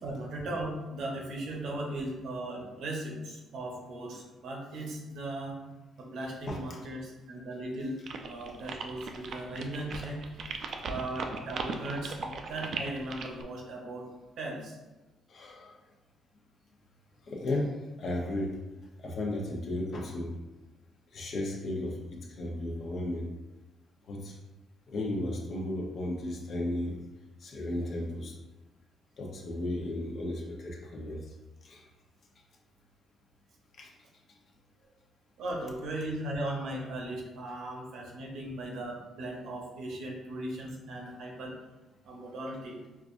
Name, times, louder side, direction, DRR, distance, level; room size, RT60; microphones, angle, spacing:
voice 1, 0.0-5.6 6.0-10.2 10.9-14.1 14.4-14.8 35.4-41.5 42.0-42.8, right 1 dB, 75° right, -1 dB, 0.9 m, -37 dB
voice 2, 6.5-6.8 15.3-15.7 17.3-18.5 19.0-20.3 21.1-23.3 24.1-24.4 24.9-27.0 27.4-28.3 29.2-31.2 31.6-31.8 33.8-33.9, left 1 dB, 55° left, -1 dB, 0.8 m, -34 dB
sound 1, 8.1-13.4, right 4 dB, 60° right, 0.4 m, -38 dB
4.7 x 2.4 x 2.5 m, 1.1 s
cardioid pair, 90°, 0 cm